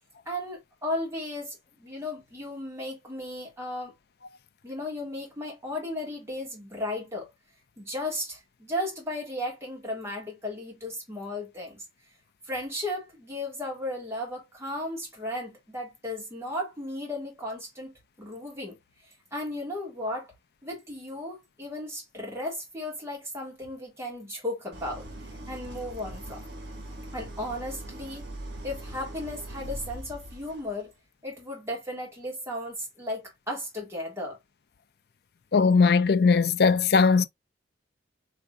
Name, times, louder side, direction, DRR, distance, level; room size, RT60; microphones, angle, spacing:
voice 1, 0.3-3.9 4.6-7.3 7.8-11.8 12.4-18.8 19.3-20.3 20.6-25.1 25.5-26.4 27.1-28.3 28.6-30.9 31.2-34.4, left 1 dB, 15° right, 2.0 m, -35 dB
Idling, 24.7-30.8, right 1 dB, 75° right, 1.7 m, -41 dB
voice 2, 35.5-37.2, left 5 dB, 55° left, 0.4 m, -19 dB
5.0 x 3.5 x 2.4 m
head